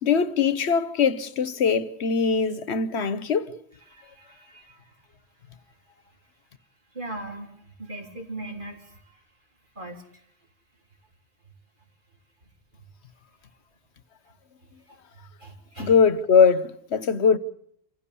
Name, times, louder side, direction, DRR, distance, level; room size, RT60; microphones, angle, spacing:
voice 1, 0.0-3.6 15.8-17.4, left 6 dB, 75° left, 1.3 m, -21 dB
voice 2, 3.8-5.1 5.5-6.0 6.9-9.2 9.7-10.3 14.9-15.0 15.4-16.0, right 2 dB, 45° right, 4.1 m, -40 dB
27.5 x 15.5 x 8.5 m
omnidirectional pair, 1.1 m